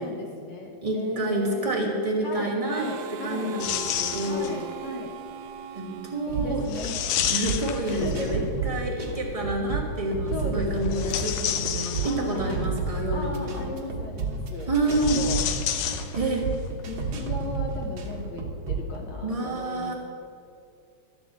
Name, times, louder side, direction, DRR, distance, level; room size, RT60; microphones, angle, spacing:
voice 1, 0.0-1.8 2.2-3.5 4.3-5.2 6.3-7.1 7.9-8.5 10.3-11.4 12.0-12.7 13.1-14.7 15.1-15.5 16.9-19.9, left 2 dB, 70° left, 0 dB, 2.2 m, -36 dB
voice 2, 0.8-2.8 3.1-4.6 5.7-6.6 7.3-13.7 14.7-15.2 16.1-16.5 19.2-19.9, right 1 dB, 40° right, -2 dB, 0.5 m, -28 dB
Harmonica, 2.7-7.2, right 9 dB, 80° right, 1.7 m, -40 dB
sound 1, 3.6-4.7 6.7-8.5 10.8-12.5 14.8-16.6 16.8-16.9 17.9-18.0, left 10 dB, 90° left, 2.2 m, -30 dB
sound 2, 6.3-19.0, right 4 dB, 55° right, 1.8 m, -31 dB
12.5 x 6.0 x 8.4 m, 2.5 s
omnidirectional pair, 3.4 m